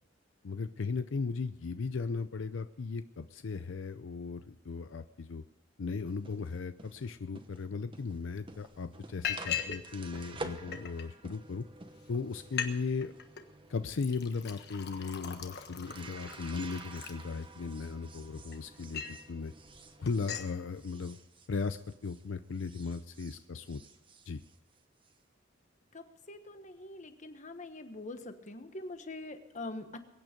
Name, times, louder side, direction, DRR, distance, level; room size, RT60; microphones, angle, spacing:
voice 1, 0.4-5.4 5.8-11.6 12.1-13.1 13.7-19.5 20.0-21.2 21.5-21.8 22.0-23.8 24.3-24.4, left 4 dB, 75° left, 11 dB, 0.5 m, -37 dB
sound 1, 6.1-22.3 22.5-25.1, right 3 dB, 25° right, 1.1 m, -50 dB
Liquid, 8.1-8.2 8.5-8.8 9.2-9.8 10.1-11.0 11.7-11.8 12.1-12.2 12.4-12.7 13.0-13.4 13.9-17.7 18.2-19.2 19.6-19.8 20.1-20.5, left 8 dB, 55° left, 1.4 m, -39 dB
voice 2, 25.9-30.0, left 2 dB, 40° left, 9 dB, 1.2 m, -44 dB
22.5 x 9.1 x 5.2 m, 0.99 s
head